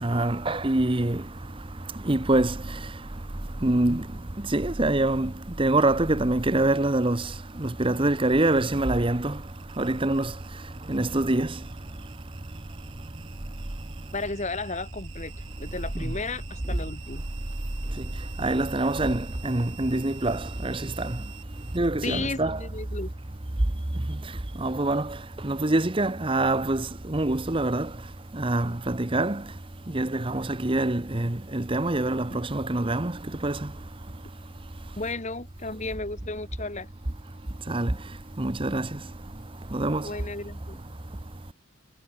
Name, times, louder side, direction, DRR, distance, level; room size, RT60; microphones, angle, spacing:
voice 1, 0.0-1.2 2.1-2.5 3.6-4.0 4.5-5.3 5.6-7.2 7.6-9.3 9.8-10.3 10.9-11.5 18.4-21.1 21.7-22.6 24.6-25.1 25.4-27.9 28.4-29.4 29.9-33.1 33.4-33.6 37.7-37.9 38.4-38.9 39.7-40.0, right 2 dB, 25° right, 1.0 m, -25 dB
sound 1, 7.0-21.9, right 12 dB, 80° right, 6.4 m, -50 dB
voice 2, 14.1-15.3 15.6-17.2 22.0-23.1 32.3-32.4 35.0-36.9 40.0-40.8, left 3 dB, 35° left, 2.2 m, -34 dB
head